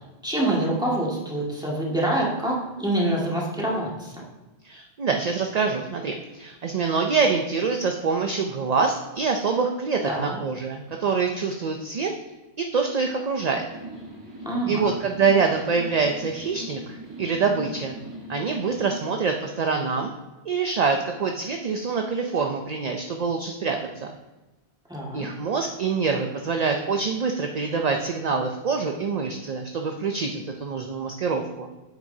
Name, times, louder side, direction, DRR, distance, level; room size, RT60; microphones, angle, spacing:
voice 1, 0.2-4.2 10.1-10.4 14.4-14.9 24.9-25.3, right 1 dB, 5° right, -5 dB, 1.9 m, -26 dB
voice 2, 4.6-12.1 12.6-13.7 14.7-18.0 18.3-20.1 20.5-24.1 25.1-31.7, right 5 dB, 45° right, 3 dB, 0.6 m, -25 dB
sound 1, 13.7-19.1, equal, 30° right, 1.4 m, -40 dB
9.2 x 7.7 x 2.7 m, 1.1 s
omnidirectional pair, 1.1 m